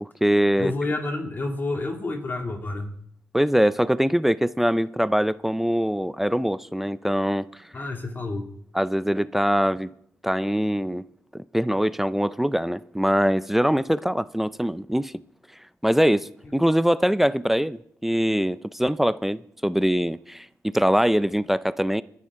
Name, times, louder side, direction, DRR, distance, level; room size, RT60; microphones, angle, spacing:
voice 1, 0.0-0.7 3.3-7.5 8.7-9.9 10.2-11.0 11.5-15.1 15.8-22.0, equal, 5° right, 16 dB, 0.5 m, -23 dB
voice 2, 0.6-2.9 7.7-8.5 16.4-16.5, left 2 dB, 35° left, 3 dB, 2.4 m, -29 dB
24.5 x 10.0 x 3.7 m, 0.70 s
cardioid pair, 85°, 6 cm